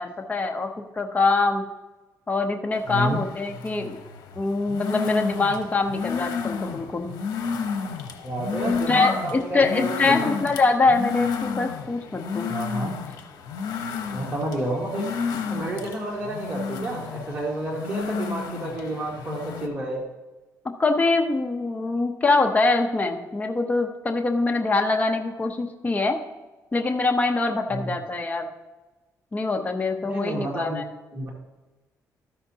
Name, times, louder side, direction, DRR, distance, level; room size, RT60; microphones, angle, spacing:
voice 1, 0.0-1.6 2.3-4.0 4.4-7.1 8.9-12.5 20.8-26.2 26.7-28.5 29.3-30.8, left 3 dB, 25° left, 4 dB, 0.8 m, -24 dB
sound 1, 2.7-19.7, left 6 dB, 80° left, 0.9 m, -31 dB
voice 2, 2.9-3.2 8.2-10.3 12.4-12.9 14.1-15.0 15.5-20.0 27.7-27.9 30.0-30.8 31.1-31.3, right 1 dB, 20° right, -3 dB, 1.7 m, -30 dB
13.5 x 5.7 x 2.8 m, 1.1 s
cardioid pair, 95°, 7 cm